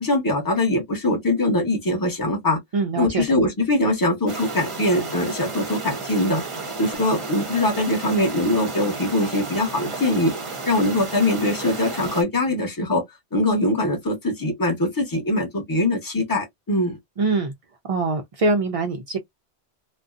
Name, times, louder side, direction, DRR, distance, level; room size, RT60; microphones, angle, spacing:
voice 1, 0.0-2.6 3.0-6.4 6.8-10.3 10.7-13.0 13.3-17.0, left 1 dB, 20° left, 0.9 m, -22 dB
voice 2, 2.7-3.4 17.2-17.5 17.9-19.2, right 3 dB, 65° right, 0.3 m, -23 dB
sound 1, 4.3-12.2, right 3 dB, 35° right, 0.7 m, -33 dB
2.5 x 2.1 x 2.4 m
omnidirectional pair, 1.2 m